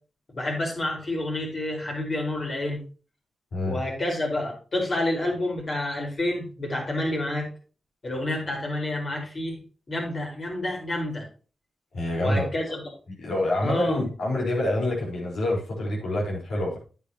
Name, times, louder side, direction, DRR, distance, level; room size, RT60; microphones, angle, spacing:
voice 1, 0.3-2.8 3.6-7.5 8.0-9.6 9.9-11.3 12.2-12.8 13.6-14.0, left 1 dB, 50° left, 0 dB, 4.8 m, -29 dB
voice 2, 3.5-3.8 11.9-12.5 13.2-16.8, left 1 dB, 80° left, -3 dB, 4.4 m, -26 dB
9.8 x 8.4 x 2.9 m, 0.36 s
cardioid pair, 65°, 0 cm